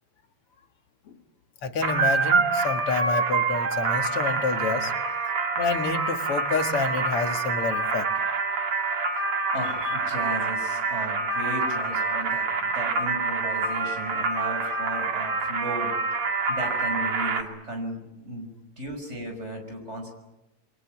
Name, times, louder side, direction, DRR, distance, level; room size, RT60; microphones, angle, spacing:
voice 1, 1.6-4.9 5.6-8.1, left 4 dB, 85° left, 7 dB, 2.8 m, -28 dB
sound 1, 1.8-17.4, right 4 dB, 80° right, 3.3 m, -26 dB
voice 2, 9.5-15.9 16.5-18.5 18.8-20.1, right 1 dB, 30° right, 4 dB, 6.2 m, -35 dB
28.0 x 23.0 x 9.0 m, 1.0 s
omnidirectional pair, 2.4 m